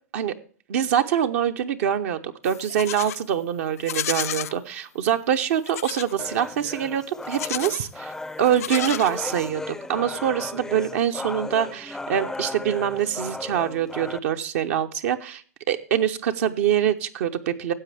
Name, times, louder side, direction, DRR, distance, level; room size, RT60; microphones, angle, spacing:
voice 1, 0.7-8.1 8.4-17.7, right 9 dB, 65° right, 6 dB, 0.7 m, -24 dB
Livestock farm animals working animals, 2.4-3.2 3.8-4.6 5.6-6.1 7.2-7.9 8.4-9.5, left 12 dB, 70° left, 0.4 m, -32 dB
sound 1, 6.2-14.2, left 2 dB, 5° left, 0.5 m, -35 dB
15.5 x 7.6 x 3.3 m, 0.43 s
hypercardioid pair, 100°, 8 cm